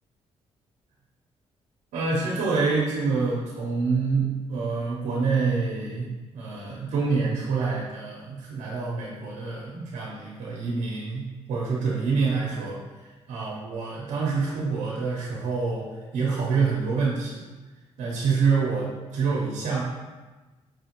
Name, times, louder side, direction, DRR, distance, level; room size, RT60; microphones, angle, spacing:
voice 1, 1.9-15.9 16.1-17.4 18.0-19.8, right 4 dB, 85° right, -4 dB, 0.8 m, -27 dB
5.3 x 2.5 x 2.9 m, 1.2 s
cardioid pair, 75°, 12 cm